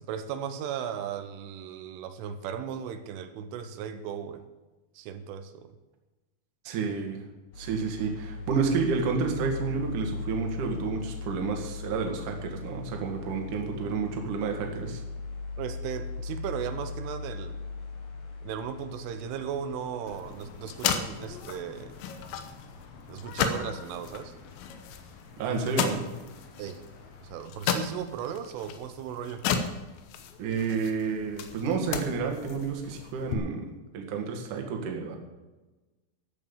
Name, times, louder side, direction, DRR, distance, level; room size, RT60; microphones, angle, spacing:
voice 1, 0.0-4.5 4.9-5.8 15.6-17.6 18.4-21.9 23.1-24.4 26.6-26.8 27.2-29.5, right 8 dB, 85° right, 9 dB, 3.4 m, -36 dB
voice 2, 6.6-7.2 7.6-15.0 25.4-26.1 30.4-35.2, right 5 dB, 55° right, 2 dB, 2.7 m, -30 dB
sound 1, 7.5-27.4, left 4 dB, 55° left, 3.3 m, -40 dB
sound 2, 20.1-33.3, left 7 dB, 75° left, 3.0 m, -35 dB
14.0 x 8.8 x 7.1 m, 1.2 s
omnidirectional pair, 5.5 m